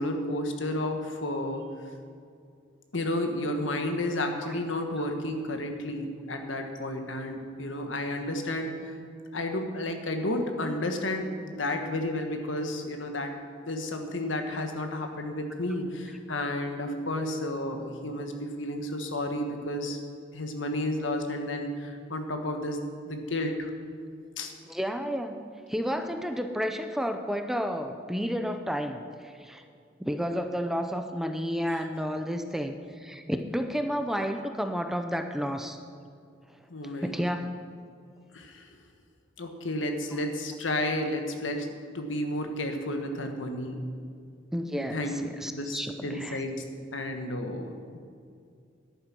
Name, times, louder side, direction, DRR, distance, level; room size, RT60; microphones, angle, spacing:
voice 1, 0.0-1.6 2.9-8.9 9.3-13.3 13.6-20.0 20.3-23.7 24.4-24.5 36.7-37.1 38.3-38.7 39.4-41.7 41.9-43.9 44.7-45.2 45.5-46.6 46.9-48.0, left 1 dB, 80° left, 5 dB, 1.4 m, -32 dB
voice 2, 24.7-25.4 25.7-29.6 30.0-35.8 37.0-37.5 44.5-46.4, equal, ahead, 6 dB, 0.6 m, -31 dB
11.0 x 9.2 x 6.0 m, 2.3 s
head